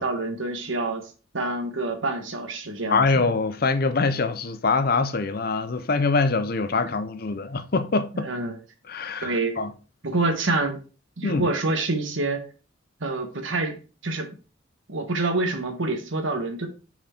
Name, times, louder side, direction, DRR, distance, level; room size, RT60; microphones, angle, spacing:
voice 1, 0.0-3.2 8.1-8.6 9.2-9.6 10.0-10.8 11.2-12.4 13.0-13.8 14.0-14.3 14.9-16.7, right 2 dB, 75° right, 1.4 m, -27 dB
voice 2, 2.9-8.3 8.9-9.7 11.2-11.5, left 4 dB, 50° left, 0.6 m, -24 dB
5.8 x 4.4 x 4.4 m
head